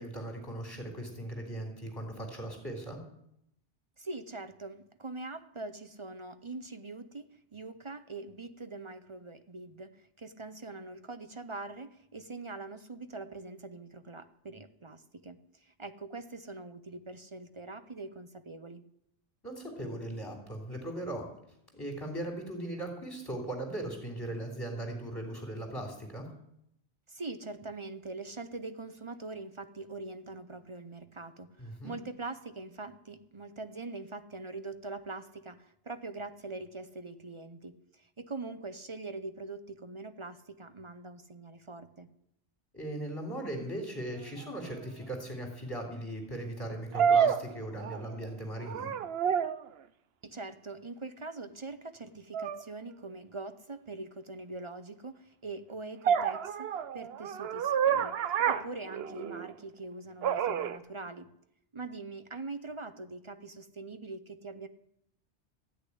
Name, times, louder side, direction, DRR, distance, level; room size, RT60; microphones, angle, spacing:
voice 1, 0.0-3.0 19.4-21.3 21.7-26.3 31.6-31.9 42.7-48.9, right 1 dB, 20° left, 1 dB, 3.4 m, -38 dB
voice 2, 4.0-18.8 27.1-42.1 50.2-61.3 61.7-64.7, right 3 dB, 35° right, 11 dB, 0.6 m, -43 dB
sound 1, 44.5-44.6 46.9-48.2 48.6-49.7 52.3-52.6 56.0-59.5 60.2-60.8, right 8 dB, 65° right, 0.9 m, -29 dB
14.0 x 6.6 x 10.0 m, 0.76 s
omnidirectional pair, 1.2 m